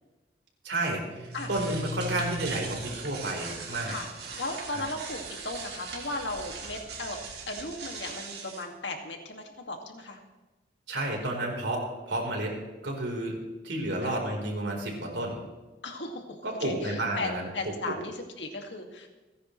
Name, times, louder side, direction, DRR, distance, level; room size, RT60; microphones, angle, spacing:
voice 1, 0.6-3.9 4.7-4.8 10.9-12.6 12.8-13.3 13.6-15.4 16.4-17.5 17.9-18.0, right 1 dB, 75° right, -1 dB, 4.3 m, -31 dB
sound 1, 1.1-8.6, right 3 dB, 60° right, 2.8 m, -39 dB
voice 2, 4.4-7.2 7.5-10.2 14.0-14.2 15.8-19.1, left 2 dB, 75° left, 3 dB, 2.3 m, -36 dB
30.0 x 10.5 x 3.3 m, 1.2 s
head